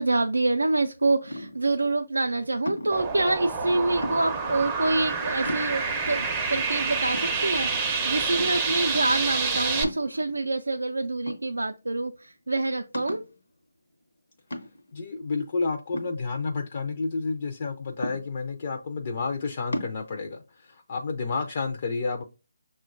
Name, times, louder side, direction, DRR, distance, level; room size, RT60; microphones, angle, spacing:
voice 1, 0.0-13.2, right 2 dB, 90° right, 0.3 m, -26 dB
sound 1, 1.3-1.7 2.7-3.1 4.0-4.5 5.0-5.1 5.5-6.1 6.6-6.7 7.1-7.9 8.4-8.8 9.8-10.6 11.3-11.9 12.2-12.3 12.9-13.4 14.5-15.0 15.9-16.8 18.0-18.6 19.7-20.0, equal, 75° left, 0.7 m, -35 dB
sound 2, 2.9-9.8, right 4 dB, 15° right, 0.4 m, -28 dB
voice 2, 14.9-22.2, left 4 dB, 45° left, 0.4 m, -30 dB
5.6 x 2.1 x 2.4 m
figure-of-eight pair, 155°, 0 cm